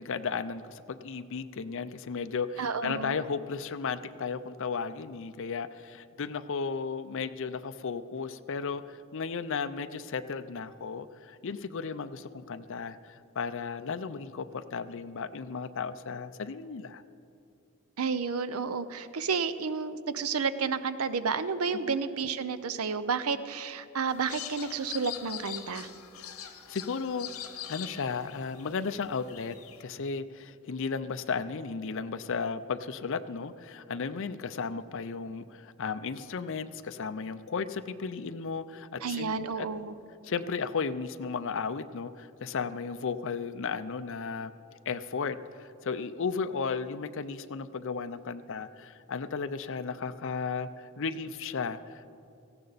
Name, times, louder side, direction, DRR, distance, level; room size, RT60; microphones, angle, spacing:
voice 1, 0.0-17.0 21.9-22.0 26.7-27.3 27.7-39.7 40.2-44.5 44.9-52.1, left 5 dB, 60° left, 11 dB, 0.5 m, -35 dB
voice 2, 2.6-3.2 18.0-25.9 39.0-40.0, right 5 dB, 90° right, 13 dB, 0.7 m, -31 dB
sound 1, 24.1-29.8, left 10 dB, 80° left, 1.2 m, -43 dB
18.0 x 15.0 x 4.1 m, 2.6 s
head